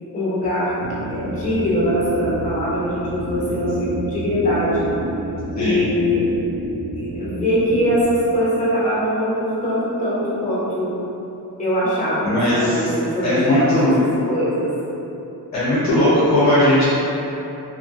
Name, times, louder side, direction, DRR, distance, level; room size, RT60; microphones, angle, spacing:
voice 1, 0.1-0.7 1.1-4.9 5.6-6.2 6.9-10.9 11.6-13.9 14.3-14.7, equal, 20° left, -10 dB, 0.9 m, -22 dB
sound 1, 0.8-8.0, right 2 dB, 40° right, 0.5 m, -30 dB
voice 2, 12.2-12.8 13.2-14.0 15.5-16.9, left 1 dB, 45° left, -11 dB, 0.7 m, -18 dB
2.7 x 2.5 x 2.5 m, 3.0 s
cardioid pair, 115°, 39 cm